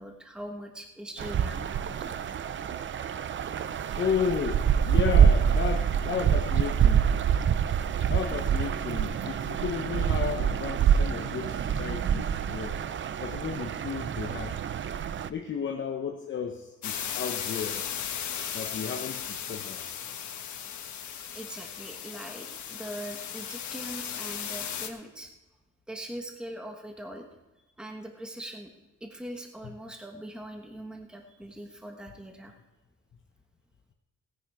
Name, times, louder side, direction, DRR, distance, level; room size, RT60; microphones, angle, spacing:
voice 1, 0.0-2.2 21.3-25.3 25.9-27.3 27.8-28.7 29.0-32.5, right 1 dB, 5° right, 3 dB, 1.2 m, -41 dB
sound 1, 1.2-15.3, right 8 dB, 40° right, 0.5 m, -26 dB
voice 2, 4.0-7.2 8.1-12.8 13.2-14.6 15.3-17.9 18.5-19.8 29.6-29.7, left 7 dB, 40° left, 3 dB, 0.9 m, -33 dB
sound 2, 16.8-24.9, left 8 dB, 75° left, 1.4 m, -36 dB
17.5 x 9.6 x 4.7 m, 1.1 s
wide cardioid pair, 165°, 29 cm